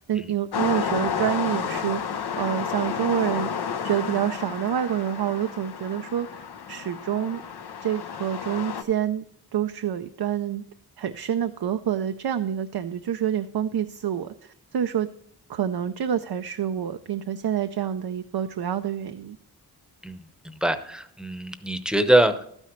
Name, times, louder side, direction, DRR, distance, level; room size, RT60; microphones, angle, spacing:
voice 1, 0.0-2.0 2.3-3.5 3.8-7.4 7.8-9.2 9.5-10.6 11.0-15.1 15.5-19.4, right 9 dB, 75° right, 8 dB, 0.6 m, -27 dB
sound 1, 0.5-8.8, left 7 dB, 80° left, 0.8 m, -31 dB
voice 2, 20.0-22.4, right 1 dB, ahead, 10 dB, 0.8 m, -23 dB
12.5 x 9.8 x 3.1 m, 0.69 s
wide cardioid pair, 110°, 39 cm